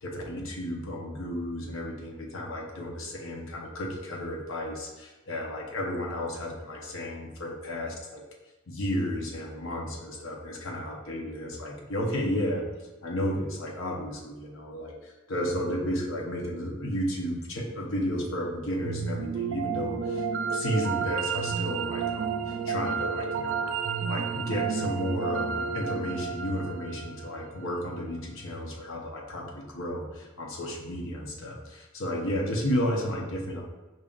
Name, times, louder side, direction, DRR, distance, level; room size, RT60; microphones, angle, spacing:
voice 1, 0.0-8.2 8.7-12.6 13.0-20.2 20.5-23.6 24.1-33.6, equal, 65° left, 0 dB, 0.8 m, -33 dB
sound 1, 18.8-28.0, right 6 dB, 60° right, 0.3 m, -31 dB
5.1 x 2.7 x 2.4 m, 1.2 s
head